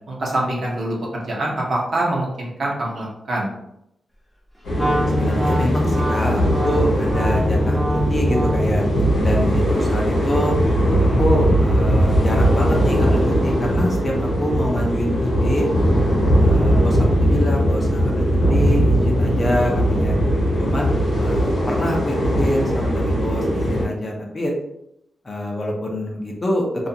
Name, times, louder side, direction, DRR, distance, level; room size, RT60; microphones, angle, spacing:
voice 1, 0.1-3.5, right 1 dB, 60° right, -3 dB, 0.8 m, -24 dB
sound 1, 4.6-23.8, equal, 90° left, 0.8 m, -19 dB
voice 2, 4.7-7.8 8.1-8.8 9.2-10.6 11.2-15.7 16.4-20.2 20.6-24.5 25.2-26.7, left 1 dB, 30° left, -1 dB, 0.6 m, -25 dB
Wind instrument woodwind instrument, 4.7-8.8, equal, 5° right, 0.7 m, -26 dB
2.4 x 2.4 x 2.7 m, 0.80 s
wide cardioid pair, 135°, 0 cm